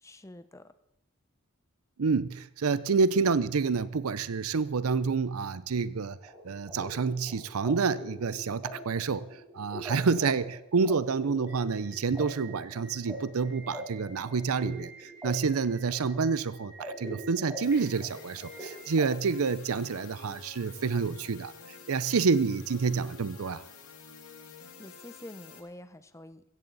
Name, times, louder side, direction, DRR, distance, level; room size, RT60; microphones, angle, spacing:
voice 1, 0.0-0.7 24.8-26.4, left 1 dB, 15° left, 12 dB, 0.7 m, -47 dB
voice 2, 2.0-6.2 6.4-23.6, right 5 dB, 80° right, 16 dB, 0.6 m, -28 dB
sound 1, 6.2-19.0, equal, 15° right, 5.0 m, -43 dB
sound 2, 17.6-25.6, left 5 dB, 80° left, 2.3 m, -50 dB
16.5 x 14.5 x 4.0 m, 0.81 s
head